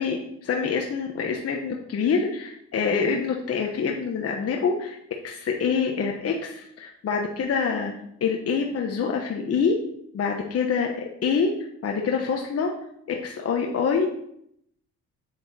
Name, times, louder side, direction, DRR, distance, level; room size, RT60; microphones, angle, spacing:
voice 1, 0.0-5.0 5.2-7.9 8.2-9.8 10.1-11.5 11.8-12.7 13.1-14.1, left 5 dB, 50° left, 1 dB, 1.1 m, -26 dB
8.0 x 6.4 x 4.2 m, 0.73 s
cardioid pair, 90°, 30 cm